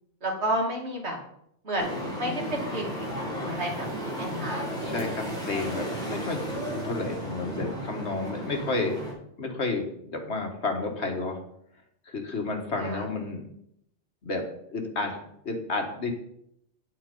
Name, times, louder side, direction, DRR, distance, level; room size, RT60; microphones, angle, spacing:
voice 1, 0.2-1.2 1.6-2.9 3.2-4.7 12.8-13.0, right 1 dB, 70° right, 0 dB, 2.7 m, -31 dB
sound 1, 1.8-9.1, equal, 5° left, 4.8 m, -34 dB
voice 2, 4.8-9.0 9.4-11.4 12.1-13.5 14.2-14.4 14.7-16.1, left 3 dB, 75° left, 3 dB, 2.0 m, -31 dB
8.7 x 8.5 x 5.4 m, 0.73 s
omnidirectional pair, 1.1 m